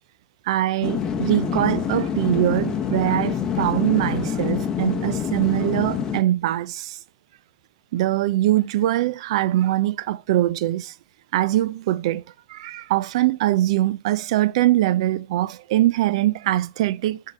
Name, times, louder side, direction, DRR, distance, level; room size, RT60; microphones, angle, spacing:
voice 1, 0.5-7.0 7.9-10.9 11.3-12.2 12.5-17.2, right 14 dB, 70° right, 0.4 m, -22 dB
sound 1, 0.8-6.2, left 7 dB, 20° left, 0.9 m, -26 dB
8.9 x 3.7 x 4.2 m
supercardioid pair, 135°, 3 cm